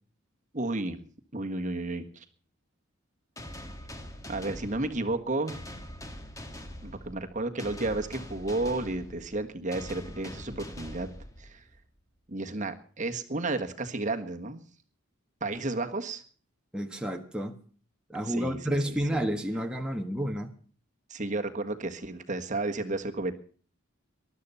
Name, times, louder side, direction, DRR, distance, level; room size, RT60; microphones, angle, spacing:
voice 1, 0.5-1.1 1.3-2.2 4.3-5.6 6.8-11.1 11.4-11.6 12.3-14.6 15.4-16.2 18.2-18.8 21.1-23.3, right 2 dB, 35° right, 6 dB, 1.5 m, -32 dB
sound 1, 3.4-11.8, left 1 dB, 15° left, 1.7 m, -43 dB
voice 2, 16.7-17.6 18.1-20.5, equal, 5° right, 2 dB, 1.3 m, -30 dB
20.0 x 12.5 x 5.5 m, 0.44 s
head